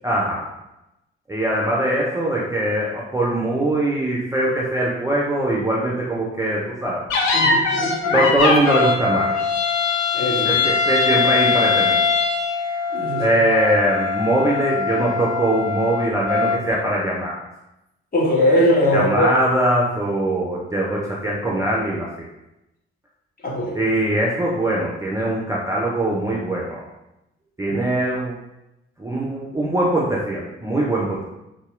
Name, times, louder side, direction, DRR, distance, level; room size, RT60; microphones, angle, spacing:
voice 1, 0.0-0.5 1.3-7.0 8.1-9.4 10.5-12.0 13.2-17.3 18.9-22.3 23.7-26.8 27.6-28.3 29.0-31.2, right 1 dB, 10° right, -5 dB, 0.5 m, -21 dB
sound 1, 7.1-16.8, left 4 dB, 55° left, 0.5 m, -21 dB
voice 2, 7.3-8.2 10.1-10.6 12.9-13.3 18.1-19.3 23.4-23.8 27.7-27.8, equal, 30° left, -2 dB, 0.9 m, -20 dB
4.0 x 2.2 x 2.4 m, 0.91 s
figure-of-eight pair, 40°, 33 cm